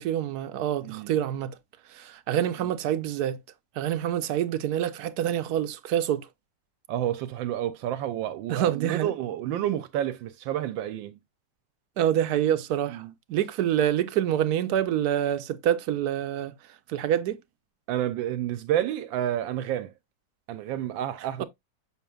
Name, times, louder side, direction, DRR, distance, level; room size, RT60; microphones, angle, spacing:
voice 1, 0.0-1.6 1.9-3.4 3.8-6.3 8.5-9.1 12.0-13.0 13.3-16.5 16.9-17.4 21.4-21.5, right 10 dB, 65° right, 1.1 m, -26 dB
voice 2, 0.8-1.1 6.9-11.1 12.9-13.1 17.9-19.9 20.5-21.4, right 11 dB, 85° right, 1.3 m, -30 dB
6.9 x 6.0 x 2.3 m
omnidirectional pair, 2.0 m